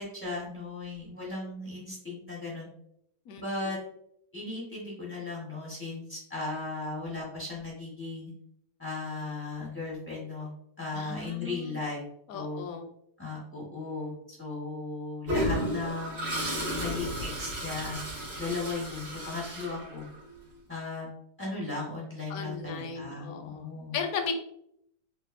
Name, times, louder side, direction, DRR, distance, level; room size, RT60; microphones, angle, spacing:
voice 1, 0.0-2.7 3.4-3.8 4.3-8.3 8.8-10.5 10.8-12.0 12.3-12.6 13.2-18.0 18.4-20.0 20.7-21.1 21.4-24.0, left 3 dB, 15° left, -5 dB, 0.4 m, -36 dB
voice 2, 3.3-3.7 10.9-11.8 12.3-12.9 22.3-23.6 23.9-24.3, left 6 dB, 70° left, 4 dB, 0.9 m, -36 dB
Toilet flush, 15.3-20.3, equal, 85° right, 2.4 m, -33 dB
4.4 x 2.5 x 2.4 m, 0.73 s
omnidirectional pair, 1.9 m